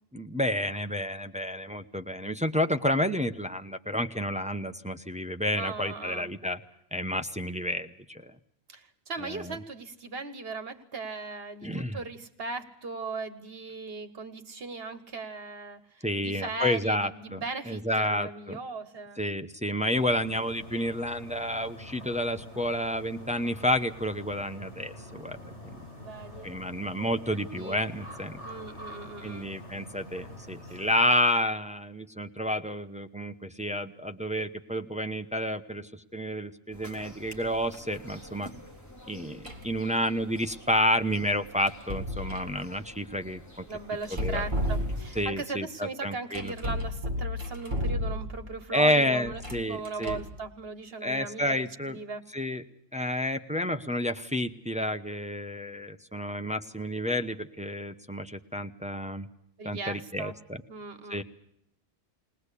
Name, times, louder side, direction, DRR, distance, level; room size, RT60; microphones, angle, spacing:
voice 1, 0.1-6.6 6.9-8.3 9.2-9.6 11.6-12.0 16.0-18.6 19.2-25.4 25.6-25.8 26.4-28.4 29.2-38.5 39.1-43.6 44.2-44.4 45.2-46.8 48.7-50.2 51.0-52.0 52.3-52.6 52.9-59.3 59.6-60.6 61.1-61.2, equal, 5° right, 9 dB, 0.8 m, -30 dB
voice 2, 5.6-6.3 8.7-19.2 26.0-26.5 27.3-27.8 28.4-29.5 30.7-30.8 43.7-52.2 59.6-60.3 60.7-61.2, right 3 dB, 60° right, 10 dB, 1.6 m, -38 dB
sound 1, 19.9-31.0, left 1 dB, 75° left, 7.2 m, -45 dB
sound 2, 36.7-45.2, equal, 15° left, 3.7 m, -49 dB
sound 3, 39.4-39.8 41.7-42.6 44.0-45.3 46.3-48.5 49.3-50.4, left 1 dB, 40° right, 2.4 m, -32 dB
21.0 x 19.5 x 8.3 m, 0.71 s
omnidirectional pair, 1.2 m